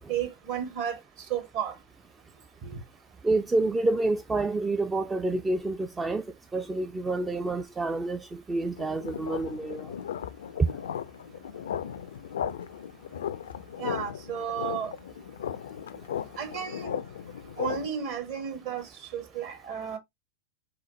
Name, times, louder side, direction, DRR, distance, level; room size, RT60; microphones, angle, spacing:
voice 1, 0.1-1.8 2.6-2.8 13.8-14.9 16.4-16.9 17.6-20.0, right 8 dB, 50° right, 1.5 m, -33 dB
voice 2, 3.2-6.3 6.5-9.9 10.6-10.7, right 2 dB, 10° right, 0.4 m, -28 dB
sound 1, 8.8-17.9, left 9 dB, 65° left, 0.3 m, -36 dB
3.9 x 3.9 x 3.0 m
figure-of-eight pair, 90°, 0 cm